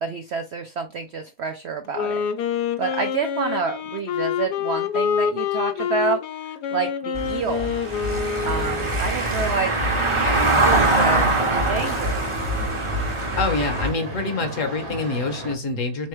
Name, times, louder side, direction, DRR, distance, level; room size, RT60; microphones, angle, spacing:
voice 1, 0.0-2.3 2.8-7.7 8.4-9.8 10.5-12.2, right 5 dB, 75° right, 5 dB, 0.6 m, -28 dB
Wind instrument woodwind instrument, 1.8-9.0, left 7 dB, 80° left, 1.2 m, -26 dB
Car passing by / Engine, 7.1-13.9, right 2 dB, 25° right, 0.7 m, -23 dB
sound 1, 8.4-15.6, right 2 dB, 45° right, 1.2 m, -35 dB
voice 2, 13.4-16.1, left 3 dB, 55° left, 6 dB, 1.2 m, -26 dB
4.3 x 3.2 x 3.1 m, 0.26 s
omnidirectional pair, 1.7 m